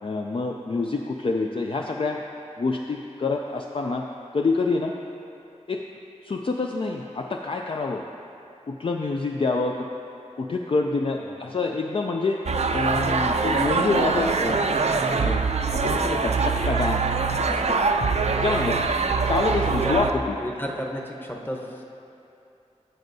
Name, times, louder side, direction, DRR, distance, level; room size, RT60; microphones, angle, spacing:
voice 1, 0.0-2.2 2.6-4.1 4.3-4.9 5.7-5.8 6.2-8.0 8.7-9.9 10.4-12.5 12.7-14.7 15.2-15.4 15.7-17.1 17.5-17.8 18.4-18.8 19.3-20.4, left 3 dB, 45° left, 1 dB, 0.3 m, -26 dB
sound 1, 12.5-20.1, right 4 dB, 60° right, 0.4 m, -23 dB
voice 2, 19.7-21.8, equal, 15° left, 0 dB, 0.9 m, -32 dB
15.0 x 5.3 x 2.7 m, 2.7 s
wide cardioid pair, 70°, 13 cm